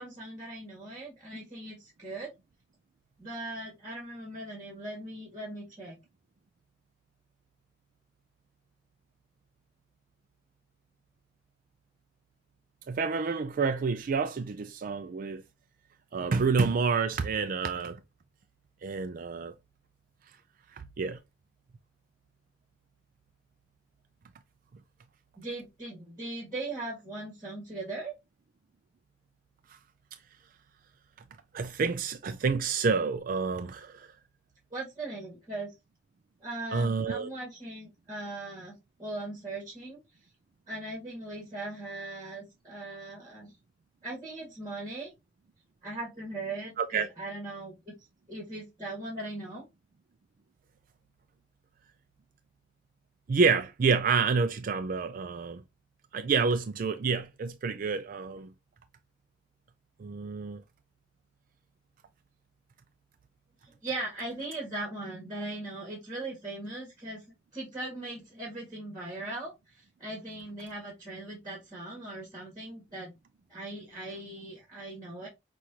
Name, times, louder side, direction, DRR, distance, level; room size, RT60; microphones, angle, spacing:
voice 1, 0.0-2.3 3.2-6.0 25.4-28.1 34.7-35.7 36.4-40.0 40.7-43.5 44.0-45.1 45.8-47.9 48.3-49.6 63.6-67.2 67.5-73.1 73.5-75.3, right 2 dB, 20° right, 1.7 m, -39 dB
voice 2, 12.9-15.4 16.1-18.0 18.8-19.5 21.0-21.2 31.5-34.1 36.7-37.3 46.8-47.1 53.3-55.6 56.1-58.5 60.0-60.6, right 5 dB, 50° right, 0.4 m, -28 dB
6.0 x 2.5 x 2.8 m
head